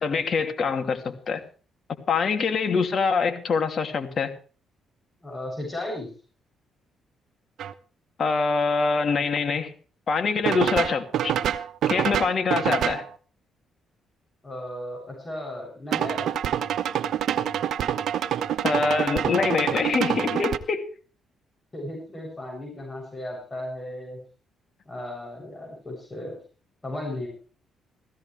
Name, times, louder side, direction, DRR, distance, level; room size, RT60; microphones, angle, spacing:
voice 1, 0.0-1.4 2.1-4.3 8.2-9.7 10.1-11.3 11.9-13.0 18.6-20.9, left 5 dB, 50° left, 2.7 m, -24 dB
voice 2, 5.2-6.1 14.4-16.3 21.7-24.2 24.9-26.4 26.8-27.3, left 1 dB, 20° left, 7.9 m, -35 dB
sound 1, 7.6-7.7 10.5-13.1 15.9-20.6, right 10 dB, 70° right, 1.0 m, -26 dB
16.0 x 15.5 x 3.4 m
cardioid pair, 90°, 0 cm